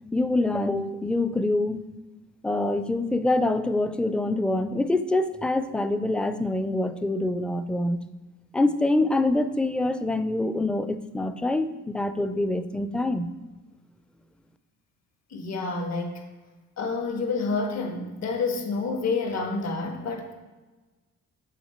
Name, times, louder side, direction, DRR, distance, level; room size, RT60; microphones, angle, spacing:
voice 1, 0.1-1.9 2.4-8.0 8.5-13.3, left 2 dB, 5° left, 10 dB, 0.4 m, -25 dB
voice 2, 15.3-16.2 16.8-20.3, left 4 dB, 60° left, 4 dB, 1.5 m, -28 dB
7.6 x 5.8 x 4.3 m, 1.2 s
cardioid pair, 90°, 30 cm